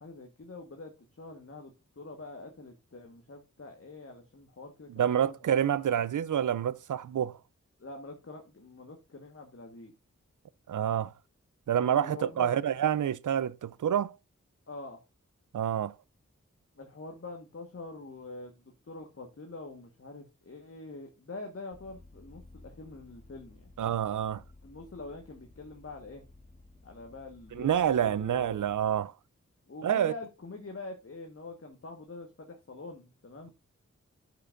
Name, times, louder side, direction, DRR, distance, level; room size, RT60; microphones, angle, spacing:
voice 1, 0.0-5.5 7.8-9.9 11.8-12.6 14.7-15.0 16.8-23.7 24.6-26.2 26.8-28.7 29.7-33.5, left 3 dB, 50° left, 1.4 m, -45 dB
voice 2, 4.9-7.4 10.7-11.1 11.7-14.2 15.5-15.9 23.8-24.4 27.5-29.1 29.8-30.1, right 9 dB, 90° right, 0.5 m, -28 dB
Vehicle, 21.7-29.1, left 2 dB, 25° left, 1.3 m, -56 dB
12.5 x 5.1 x 2.5 m
wide cardioid pair, 65°, 30 cm